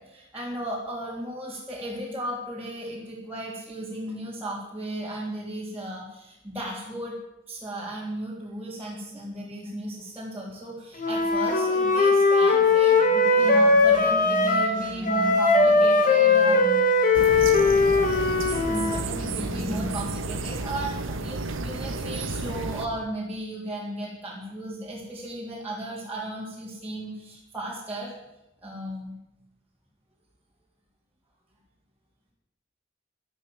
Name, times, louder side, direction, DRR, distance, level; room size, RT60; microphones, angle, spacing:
voice 1, 0.0-7.1 7.5-17.1 18.6-28.2 28.6-29.2, right 1 dB, 10° right, -7 dB, 3.4 m, -35 dB
Wind instrument woodwind instrument, 11.0-14.8 15.1-19.1, left 3 dB, 45° left, 2.2 m, -20 dB
sound 1, 17.1-22.9, right 3 dB, 85° right, 1.4 m, -32 dB
13.0 x 12.0 x 7.7 m, 0.90 s
head